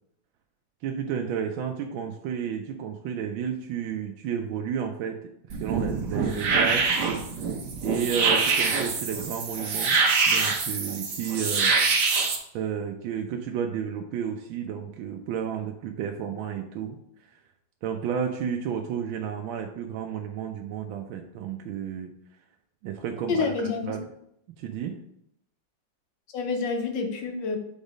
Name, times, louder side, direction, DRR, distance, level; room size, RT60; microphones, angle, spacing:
voice 1, 0.8-7.0 7.8-10.0 10.3-11.8 12.5-17.0 17.8-22.1 22.8-24.0 24.6-25.0, right 8 dB, 80° right, 3 dB, 1.3 m, -32 dB
sound 1, 5.5-12.4, right 4 dB, 60° right, 1.5 m, -25 dB
voice 2, 23.3-24.0 26.3-27.6, left 4 dB, 65° left, 4 dB, 1.6 m, -28 dB
5.5 x 4.0 x 5.1 m, 0.75 s
omnidirectional pair, 2.2 m